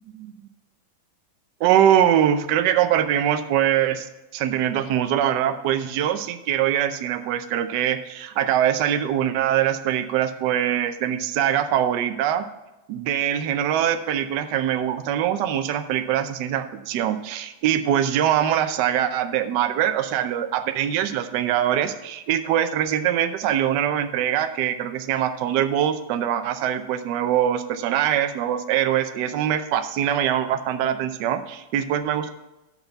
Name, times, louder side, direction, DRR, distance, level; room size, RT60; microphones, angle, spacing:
voice 1, 1.6-4.1 4.3-12.4 12.9-32.3, right 10 dB, 70° right, 9 dB, 1.2 m, -23 dB
6.7 x 6.1 x 7.0 m, 0.97 s
omnidirectional pair, 2.2 m